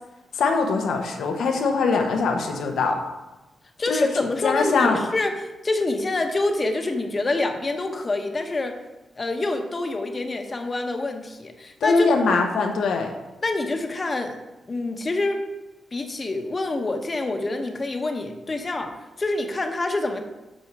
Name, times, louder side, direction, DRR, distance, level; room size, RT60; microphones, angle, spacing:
voice 1, 0.3-3.0 3.9-4.1 4.4-5.0 11.8-13.1, left 4 dB, 80° left, 3 dB, 1.1 m, -22 dB
voice 2, 3.8-5.3 5.6-8.8 9.2-12.1 13.4-14.4 14.7-15.4 15.9-20.2, left 2 dB, 30° left, 5 dB, 1.0 m, -26 dB
7.9 x 5.4 x 4.8 m, 1.1 s
cardioid pair, 85°, 0 cm